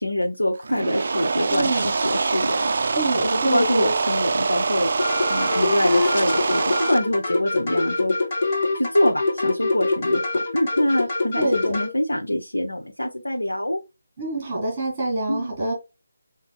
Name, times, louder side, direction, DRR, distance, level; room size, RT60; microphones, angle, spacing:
voice 1, 0.0-2.9 3.2-4.9 5.3-8.2 8.4-13.8 15.3-15.5, left 1 dB, 90° left, 0.9 m, -25 dB
sound 1, 0.6-7.0, right 4 dB, 50° right, 0.3 m, -24 dB
voice 2, 1.5-1.9 2.9-3.9 11.3-11.8 14.2-15.7, right 1 dB, 25° right, 1.9 m, -25 dB
sound 2, 5.0-11.9, left 3 dB, 35° left, 1.7 m, -24 dB
6.1 x 2.6 x 2.2 m
figure-of-eight pair, 155°, 0 cm